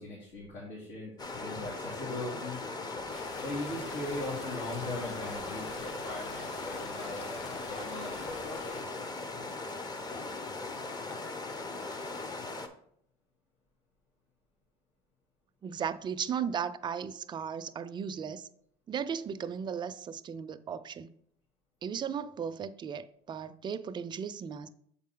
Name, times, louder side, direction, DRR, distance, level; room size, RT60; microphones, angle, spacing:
voice 1, 0.0-2.6 3.4-9.0, left 2 dB, 80° left, 2.4 m, -40 dB
sound 1, 1.2-12.7, left 3 dB, 30° left, 0.8 m, -39 dB
sound 2, 3.1-8.8, left 3 dB, 50° left, 1.3 m, -47 dB
voice 2, 15.6-18.5 18.9-21.1 21.8-24.7, right 7 dB, 35° right, 0.4 m, -36 dB
7.1 x 4.1 x 3.8 m
supercardioid pair, 95°, 14 cm